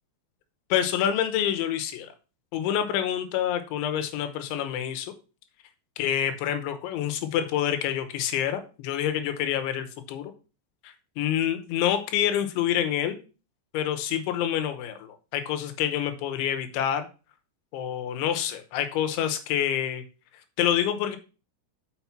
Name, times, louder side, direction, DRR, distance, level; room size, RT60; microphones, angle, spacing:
voice 1, 0.7-2.1 2.5-5.1 6.0-10.3 10.8-13.2 13.7-17.1 17.7-20.0 20.6-21.2, left 10 dB, 85° left, 8 dB, 3.4 m, -27 dB
6.4 x 5.9 x 5.7 m, 0.34 s
omnidirectional pair, 5.3 m